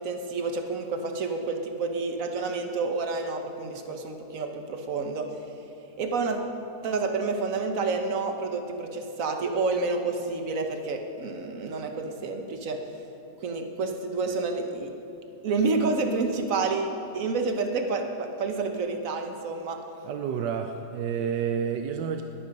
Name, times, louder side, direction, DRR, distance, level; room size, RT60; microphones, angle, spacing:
voice 1, 0.0-5.3 6.0-6.4 6.8-12.8 13.4-14.9 15.4-19.8, right 3 dB, 55° right, 4 dB, 1.5 m, -29 dB
voice 2, 20.0-22.2, right 7 dB, 90° right, 5 dB, 1.3 m, -29 dB
21.0 x 8.6 x 5.3 m, 2.9 s
omnidirectional pair, 1.8 m